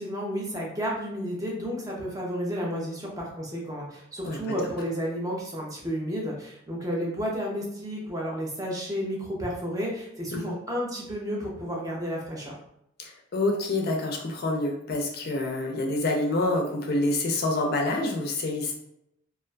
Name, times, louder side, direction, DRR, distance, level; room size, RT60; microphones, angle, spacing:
voice 1, 0.0-12.5, equal, 20° right, -3 dB, 0.5 m, -32 dB
voice 2, 13.0-18.8, left 2 dB, 50° left, 2 dB, 0.4 m, -27 dB
2.4 x 2.4 x 2.2 m, 0.77 s
head